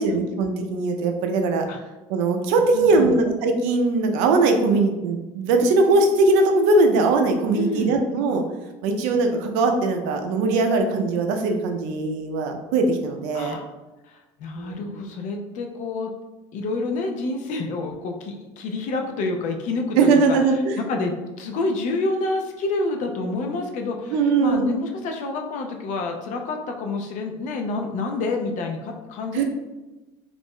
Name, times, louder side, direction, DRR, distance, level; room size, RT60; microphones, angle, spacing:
voice 1, 0.0-1.6 2.1-8.4 8.8-13.6 14.5-14.8 20.0-20.8 24.1-24.7 29.3-29.4, right 3 dB, 80° right, 4 dB, 0.5 m, -20 dB
voice 2, 2.7-3.2 7.5-7.9 13.3-13.7 14.1-16.1 16.5-20.4 20.8-29.4, left 3 dB, 55° left, 3 dB, 0.5 m, -28 dB
2.5 x 2.0 x 3.5 m, 1.1 s
supercardioid pair, 110°, 15 cm